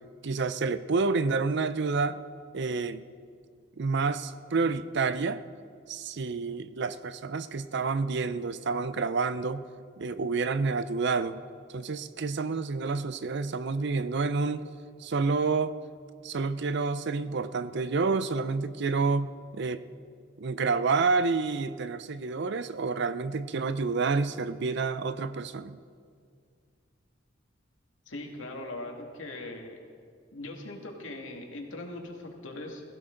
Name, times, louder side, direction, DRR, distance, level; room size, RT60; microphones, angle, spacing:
voice 1, 0.2-2.2 2.5-3.1 3.8-5.4 5.9-9.6 10.0-11.4 11.7-14.7 15.0-15.7 16.2-19.8 20.4-25.8, right 4 dB, 65° right, 13 dB, 0.6 m, -29 dB
voice 2, 28.1-29.8 30.3-32.8, left 2 dB, 90° left, 1 dB, 2.2 m, -40 dB
21.0 x 15.5 x 3.9 m, 2.2 s
head